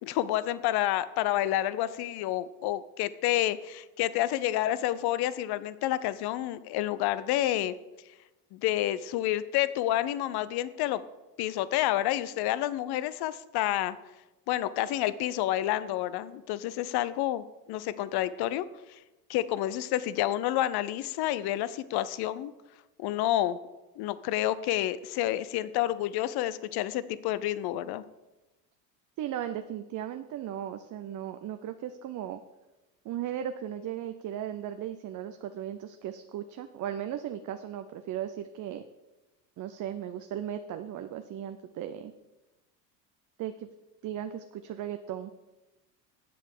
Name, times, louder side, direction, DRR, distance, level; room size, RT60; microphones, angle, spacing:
voice 1, 0.0-7.7 8.5-11.0 11.4-14.0 14.5-18.7 19.3-22.5 23.0-23.6 24.0-28.0, left 13 dB, 50° left, 16 dB, 0.7 m, -29 dB
voice 2, 29.2-32.4 33.0-38.8 39.6-42.1 43.4-43.7 44.0-45.3, right 10 dB, 40° right, 8 dB, 0.7 m, -36 dB
7.8 x 7.6 x 6.6 m, 1.0 s
supercardioid pair, 95°, 50 cm